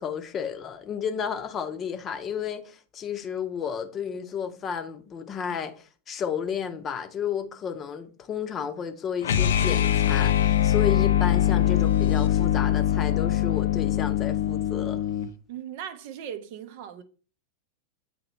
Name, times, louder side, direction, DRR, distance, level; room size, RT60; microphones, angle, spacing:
voice 1, 0.0-15.0, left 7 dB, 25° left, 0.7 m, -32 dB
sound 1, 9.2-15.3, left 11 dB, 60° left, 0.4 m, -23 dB
voice 2, 15.5-17.0, right 9 dB, 50° right, 0.6 m, -38 dB
8.5 x 2.9 x 4.2 m
figure-of-eight pair, 90°, 0 cm